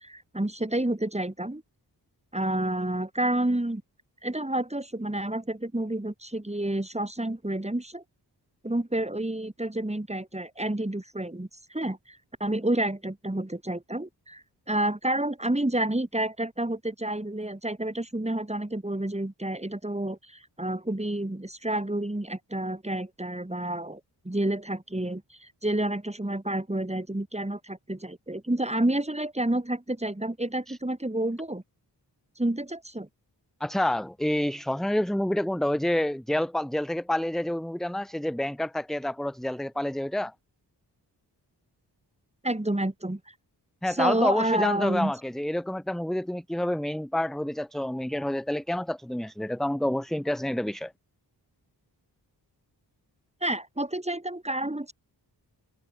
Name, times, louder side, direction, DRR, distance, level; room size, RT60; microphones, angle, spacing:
voice 1, 0.0-1.6 2.3-3.8 4.2-8.0 8.6-24.0 24.3-31.6 32.4-33.1 42.4-43.2 43.8-45.1 53.4-54.9, right 1 dB, 15° right, 6.9 m, -29 dB
voice 2, 33.6-40.3 43.8-50.9, left 1 dB, ahead, 0.7 m, -28 dB
cardioid pair, 60°, 42 cm